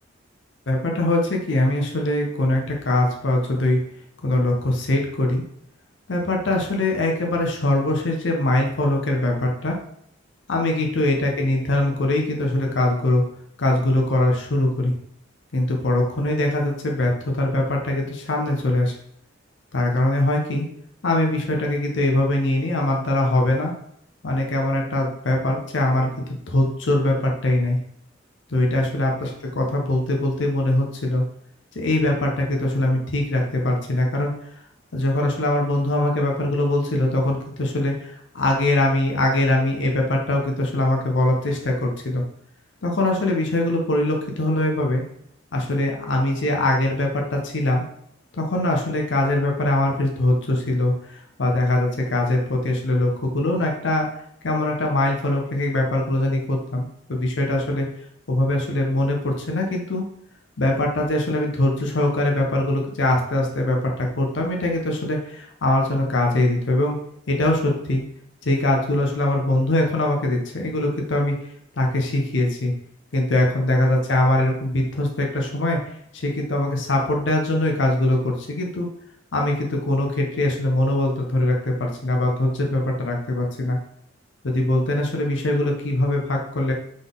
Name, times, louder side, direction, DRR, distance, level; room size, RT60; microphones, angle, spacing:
voice 1, 0.7-3.8 4.2-5.4 6.1-9.8 10.5-13.2 13.6-14.9 15.5-18.9 19.7-20.6 21.0-23.7 24.2-27.8 28.5-31.2 31.7-34.3 34.9-42.2 42.8-45.0 45.5-47.8 48.4-54.1 54.4-57.9 58.3-60.0 60.6-67.0 67.3-68.0 68.4-71.3 71.8-72.7 73.1-75.8 76.1-78.9 79.3-83.8 84.4-86.7, left 1 dB, 75° left, 1 dB, 0.7 m, -22 dB
3.9 x 3.8 x 3.5 m, 0.72 s
head